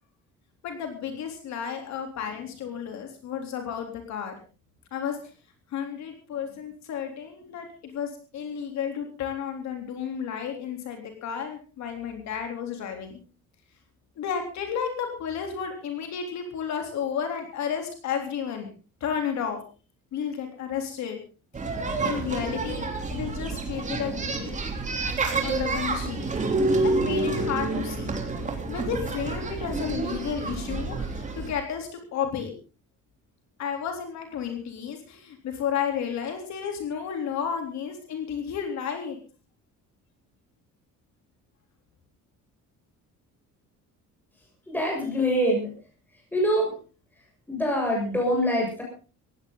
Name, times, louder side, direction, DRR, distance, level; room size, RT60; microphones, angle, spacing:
voice 1, 0.6-4.3 4.9-5.2 5.7-13.2 14.2-18.7 19.0-19.6 20.1-21.2 22.0-24.6 25.4-26.3 26.8-28.1 28.7-32.5 33.6-39.2, left 7 dB, 60° left, 4 dB, 3.6 m, -32 dB
sound 1, 21.5-31.5, right 3 dB, 25° right, 3.5 m, -28 dB
voice 2, 44.7-45.7 46.3-46.7 47.5-48.8, equal, 5° left, -2 dB, 7.2 m, -24 dB
20.0 x 16.0 x 4.0 m, 0.36 s
cardioid pair, 165°, 31 cm